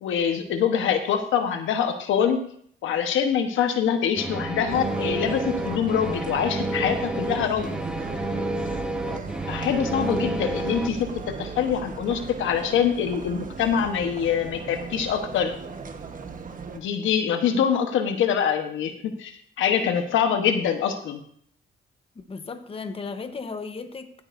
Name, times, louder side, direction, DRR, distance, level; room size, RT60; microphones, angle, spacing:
voice 1, 0.0-2.4 2.8-7.8 9.5-15.5 16.7-21.2, left 8 dB, 80° left, 6 dB, 1.2 m, -24 dB
sound 1, 4.2-10.9, right 1 dB, 5° right, 1.1 m, -30 dB
sound 2, 4.7-16.8, right 5 dB, 40° right, 1.2 m, -37 dB
sound 3, 5.6-17.1, right 3 dB, 65° right, 5.1 m, -48 dB
voice 2, 22.1-24.2, left 4 dB, 30° left, 8 dB, 1.1 m, -35 dB
15.5 x 8.7 x 2.7 m, 0.63 s
cardioid pair, 90°, 20 cm